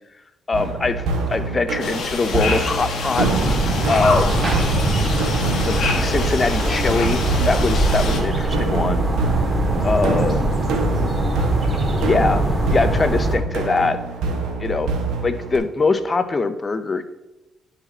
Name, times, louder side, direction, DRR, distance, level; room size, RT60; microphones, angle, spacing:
voice 1, 0.5-3.3 3.9-4.4 5.7-9.1 9.8-10.4 12.0-12.4 12.7-14.0 14.6-14.9 15.2-17.0, left 3 dB, 30° left, 11 dB, 0.6 m, -22 dB
sound 1, 0.5-15.6, right 4 dB, 85° right, 1.2 m, -26 dB
sound 2, 1.8-8.2, left 4 dB, 65° left, 1.3 m, -27 dB
sound 3, 3.2-13.4, right 1 dB, 30° right, 2.0 m, -22 dB
11.0 x 4.2 x 4.0 m, 1.0 s
cardioid pair, 90°, 0 cm